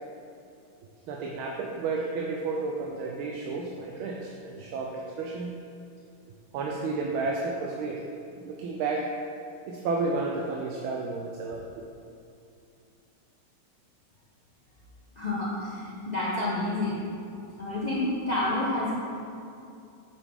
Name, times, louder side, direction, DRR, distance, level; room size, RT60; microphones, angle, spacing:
voice 1, 1.1-5.6 6.5-8.0 8.3-9.1 9.7-11.8, right 3 dB, 80° right, -1 dB, 1.4 m, -32 dB
voice 2, 15.2-17.0 17.6-18.9, left 2 dB, 50° left, -8 dB, 0.5 m, -29 dB
8.0 x 5.8 x 3.5 m, 2.5 s
omnidirectional pair, 2.3 m